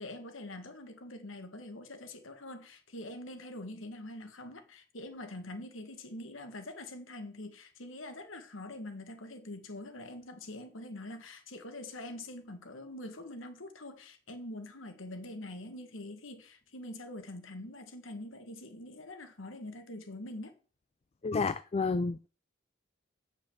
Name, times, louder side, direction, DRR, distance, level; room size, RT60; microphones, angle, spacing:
voice 1, 0.0-20.5, left 1 dB, 80° left, 1.7 m, -44 dB
voice 2, 21.2-22.3, left 4 dB, 30° left, 0.4 m, -30 dB
7.8 x 6.3 x 7.3 m
head